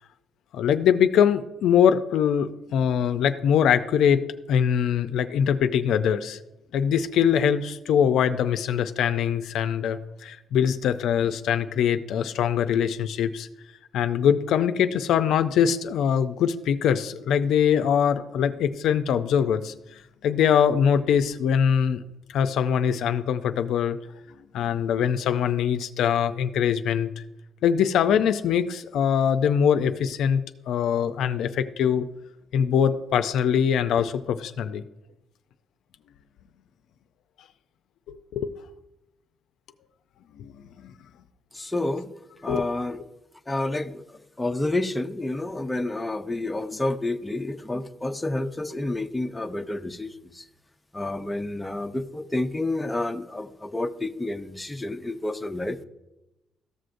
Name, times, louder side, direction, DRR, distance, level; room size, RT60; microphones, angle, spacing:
voice 1, 0.5-4.2 4.5-6.4 6.7-13.5 13.9-19.7 20.2-22.0 22.3-24.0 24.5-27.2 27.6-32.1 32.5-34.8 38.1-38.5 40.4-40.5 40.8-40.9 42.5-42.6, left 8 dB, 80° left, 9 dB, 0.4 m, -23 dB
voice 2, 41.5-42.1 42.4-43.0 43.5-44.0 44.4-50.4 50.9-55.8, left 2 dB, 15° left, 7 dB, 0.6 m, -29 dB
14.0 x 6.3 x 2.6 m, 0.95 s
cardioid pair, 90°, 0 cm